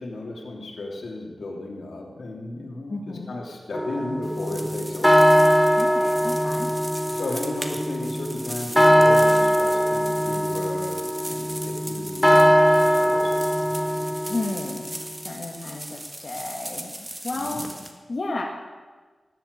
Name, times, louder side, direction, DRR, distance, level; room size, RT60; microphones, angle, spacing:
voice 1, 0.0-5.2 7.1-12.6 12.8-13.3 17.3-17.7, left 2 dB, 75° left, -1 dB, 3.0 m, -34 dB
voice 2, 2.9-3.3 5.8-6.7 13.8-15.0 15.2-17.7 18.1-18.4, left 2 dB, 50° left, -1 dB, 1.6 m, -33 dB
sound 1, 3.7-14.9, equal, 5° left, 0.7 m, -21 dB
sound 2, 4.2-17.9, right 1 dB, 15° right, 1.6 m, -38 dB
18.0 x 7.9 x 8.1 m, 1.4 s
wide cardioid pair, 115°, 0 cm